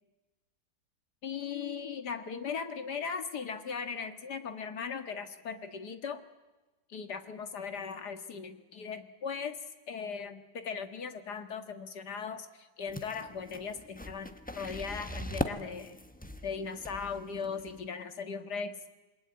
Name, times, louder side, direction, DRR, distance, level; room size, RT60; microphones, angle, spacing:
voice 1, 1.2-6.2 6.9-9.6 9.9-16.0 16.4-18.8, left 6 dB, 65° left, 8 dB, 2.2 m, -38 dB
sound 1, 12.9-17.9, left 1 dB, 5° left, 0.9 m, -40 dB
27.5 x 21.5 x 9.5 m, 1.1 s
omnidirectional pair, 1.9 m